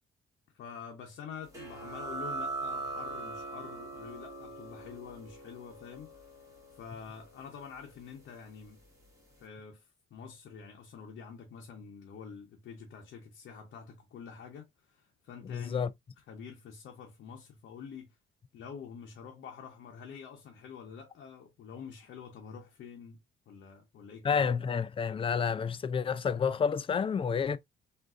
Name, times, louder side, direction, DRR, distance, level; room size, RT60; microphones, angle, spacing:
voice 1, 0.5-6.1 6.7-8.8 9.4-15.9 16.2-18.2 18.5-23.2 23.5-24.8, left 6 dB, 65° left, 0.8 m, -47 dB
sound 1, 1.5-8.8, right 2 dB, 15° right, 1.6 m, -42 dB
voice 2, 15.5-15.9 24.2-27.6, left 6 dB, 25° left, 0.3 m, -29 dB
3.5 x 2.5 x 2.4 m
cardioid pair, 90°, 20 cm